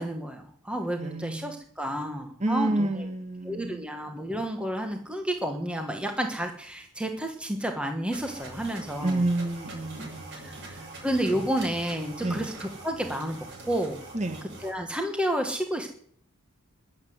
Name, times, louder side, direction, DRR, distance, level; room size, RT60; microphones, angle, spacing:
voice 1, 0.0-3.1 3.4-9.2 10.4-14.0 14.6-15.9, right 1 dB, 5° right, 1.3 m, -31 dB
voice 2, 1.0-1.6 2.4-3.8 9.0-11.0 12.2-12.5 14.1-14.4, right 2 dB, 30° right, 1.6 m, -30 dB
sound 1, 8.1-14.7, right 2 dB, 55° right, 6.3 m, -43 dB
21.5 x 7.8 x 7.9 m
head